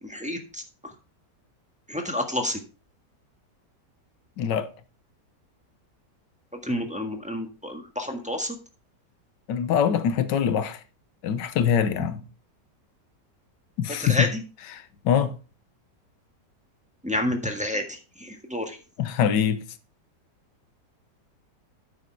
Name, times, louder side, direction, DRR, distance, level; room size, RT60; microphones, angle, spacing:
voice 1, 0.0-0.9 1.9-2.6 6.6-8.6 14.0-14.4 17.0-18.8, left 1 dB, 5° right, 1.4 m, -29 dB
voice 2, 4.4-4.7 9.5-10.8 11.2-12.2 13.8-14.3 14.7-15.4 19.0-19.6, left 8 dB, 80° left, 1.5 m, -24 dB
9.6 x 6.5 x 4.6 m
omnidirectional pair, 1.9 m